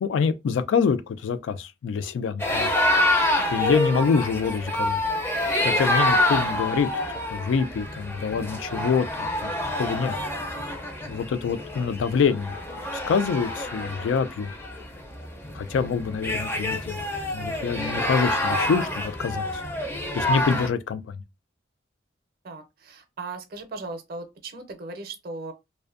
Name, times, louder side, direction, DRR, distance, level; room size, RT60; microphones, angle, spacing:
voice 1, 0.0-2.7 3.5-5.0 5.6-6.9 7.3-9.5 9.8-10.1 11.1-12.6 13.1-14.5 15.5-17.0 17.3-19.6 20.1-21.2, left 5 dB, 90° left, 0.3 m, -26 dB
sound 1, 2.4-20.7, left 1 dB, 10° left, 0.4 m, -27 dB
voice 2, 3.4-3.7 22.4-25.5, right 3 dB, 55° right, 0.5 m, -38 dB
2.5 x 2.1 x 2.4 m
head